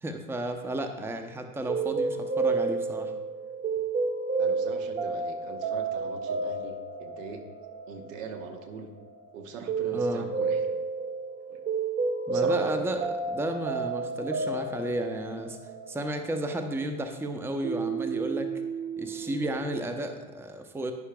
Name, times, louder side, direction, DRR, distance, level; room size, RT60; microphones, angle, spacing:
voice 1, 0.0-3.1 9.9-10.2 12.3-15.6 15.9-18.5 19.0-20.9, right 1 dB, 5° right, 6 dB, 0.7 m, -33 dB
sound 1, 1.7-17.3 17.6-19.6, right 4 dB, 25° right, 1.0 m, -31 dB
voice 2, 4.4-7.4 7.9-8.9 9.3-10.7 11.5-11.6 12.3-12.7, right 5 dB, 65° right, 5 dB, 1.2 m, -42 dB
11.0 x 9.8 x 2.3 m, 1.1 s
figure-of-eight pair, 70°, 42 cm